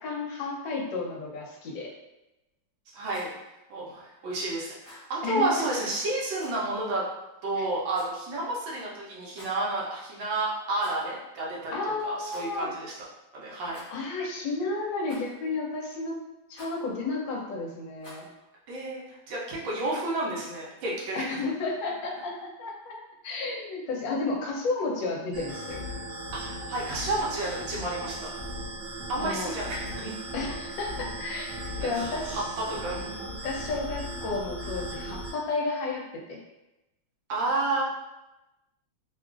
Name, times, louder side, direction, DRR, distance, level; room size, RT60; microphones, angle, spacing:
voice 1, 0.0-1.9 5.2-5.6 7.6-7.7 11.7-12.7 13.9-16.1 16.5-18.3 21.1-23.0 23.2-25.8 29.2-29.5 30.3-32.4 32.7-32.8 33.4-36.4, left 3 dB, 75° left, -2 dB, 1.4 m, -32 dB
voice 2, 2.9-3.3 3.7-7.0 7.4-12.9 13.3-13.8 18.7-21.4 26.4-28.4 29.1-30.1 31.8-33.4 37.3-37.8, right 2 dB, 75° right, -4 dB, 1.5 m, -31 dB
Rattle, 3.0-3.4 4.8-5.1 6.3-6.6 7.9-8.3 9.2-9.6 10.7-11.2 11.4-11.5 12.2-12.5 13.7-14.2 15.1-15.5 16.5-16.8 18.0-18.3, equal, 45° left, 1.0 m, -49 dB
sound 1, 25.3-35.3, equal, 55° right, 1.1 m, -37 dB
3.5 x 2.3 x 2.4 m, 0.97 s
omnidirectional pair, 2.1 m